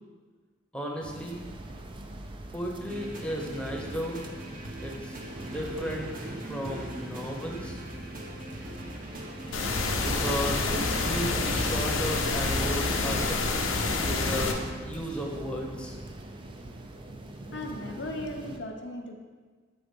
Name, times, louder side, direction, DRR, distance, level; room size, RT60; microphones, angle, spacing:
voice 1, 0.7-1.4 2.5-4.2 4.8-6.1 6.5-7.8 10.0-13.7 14.0-16.0, equal, 5° left, -1 dB, 0.8 m, -34 dB
sound 1, 1.0-18.6, right 1 dB, 25° right, 0.4 m, -43 dB
sound 2, 2.9-13.3, equal, 45° right, 0.8 m, -41 dB
sound 3, 9.5-14.5, left 3 dB, 90° left, 0.8 m, -27 dB
voice 2, 17.5-19.1, left 1 dB, 60° left, 2 dB, 0.7 m, -37 dB
7.9 x 3.6 x 5.2 m, 1.4 s
head